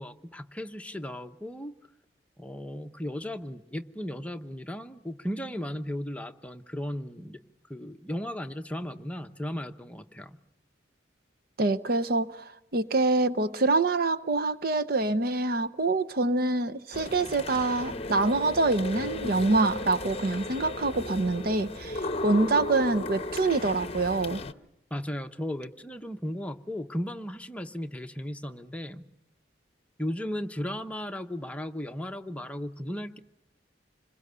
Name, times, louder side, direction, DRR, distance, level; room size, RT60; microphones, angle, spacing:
voice 1, 0.0-1.7 2.4-7.4 7.7-10.4 24.9-29.1 30.0-33.2, equal, 10° left, 0.9 m, -36 dB
voice 2, 11.6-12.4 12.7-24.4, right 3 dB, 55° right, 0.8 m, -26 dB
sound 1, 16.9-24.5, left 2 dB, 35° left, 0.9 m, -35 dB
27.0 x 21.5 x 6.8 m
head